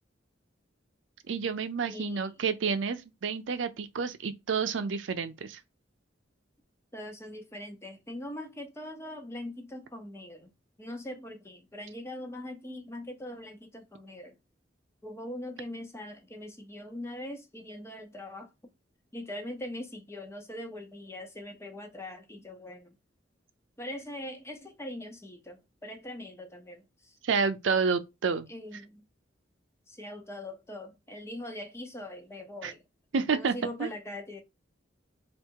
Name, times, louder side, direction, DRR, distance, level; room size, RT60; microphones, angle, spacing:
voice 1, 1.3-5.6 27.2-28.5 32.6-32.7 33.1-33.5 33.8-33.9, right 5 dB, 85° right, 0.5 m, -29 dB
voice 2, 1.8-2.4 6.9-10.5 10.8-14.3 15.0-18.5 19.1-22.9 23.8-27.2 28.5-29.0 29.9-32.8 33.3-34.4, left 1 dB, 15° left, 0.7 m, -41 dB
3.5 x 2.4 x 4.5 m
head